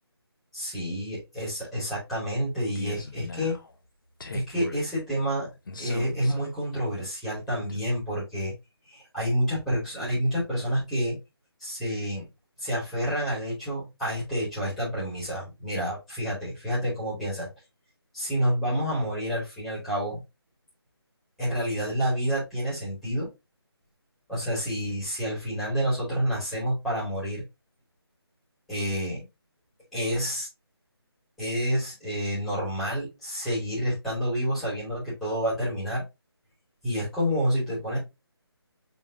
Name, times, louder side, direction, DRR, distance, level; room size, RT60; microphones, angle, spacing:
voice 1, 0.5-3.6 4.3-5.5 5.8-8.5 8.9-11.2 11.6-12.3 12.6-17.5 18.1-20.2 21.4-23.3 24.3-27.4 28.7-29.3 29.9-30.5 31.4-36.0 36.8-38.0, equal, ahead, 2.6 m, -29 dB
sound 1, 2.7-3.7 4.2-4.8 5.7-6.5 7.5-7.9, left 3 dB, 50° left, 1.0 m, -39 dB
5.4 x 3.7 x 2.7 m
figure-of-eight pair, 165°, 14 cm